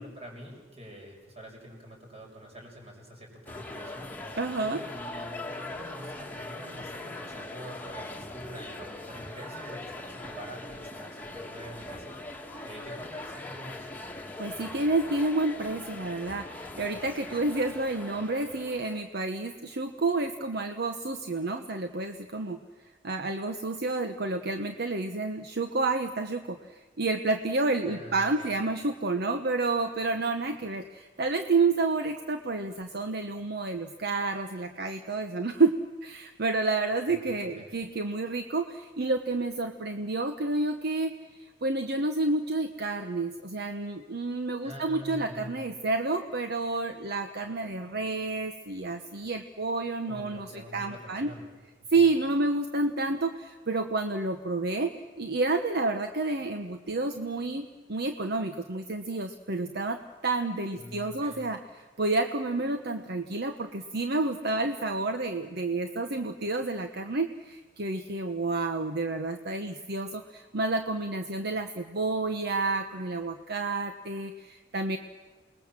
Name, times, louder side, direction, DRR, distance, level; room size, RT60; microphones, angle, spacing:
voice 1, 0.0-13.9 27.8-28.7 37.1-37.7 44.6-45.7 50.1-51.5 51.9-52.0 60.7-61.4, equal, 35° right, 0 dB, 6.4 m, -46 dB
sound 1, 3.5-19.0, left 2 dB, 10° left, 1.9 m, -41 dB
voice 2, 4.4-4.8 14.4-22.6 23.0-35.7 36.0-41.1 41.4-51.3 51.9-54.9 55.2-61.6 62.0-75.0, right 3 dB, 55° right, 7 dB, 1.1 m, -29 dB
29.0 x 20.0 x 7.5 m, 1.2 s
head